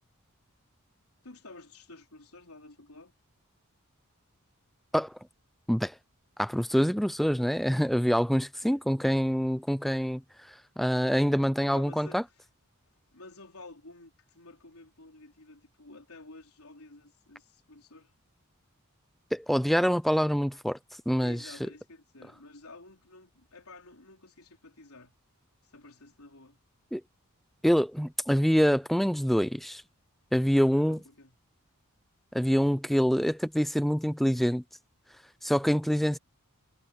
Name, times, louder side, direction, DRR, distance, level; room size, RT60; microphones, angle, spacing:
voice 1, 1.2-3.1 8.6-9.0 11.6-12.2 13.1-18.1 21.2-25.1 25.6-26.6 30.7-31.4, left 2 dB, 85° left, 3.9 m, -51 dB
voice 2, 6.4-12.2 19.3-20.8 21.1-21.5 26.9-27.0 27.6-29.8 30.3-31.0 32.3-34.6 35.4-36.2, equal, ahead, 0.4 m, -26 dB
head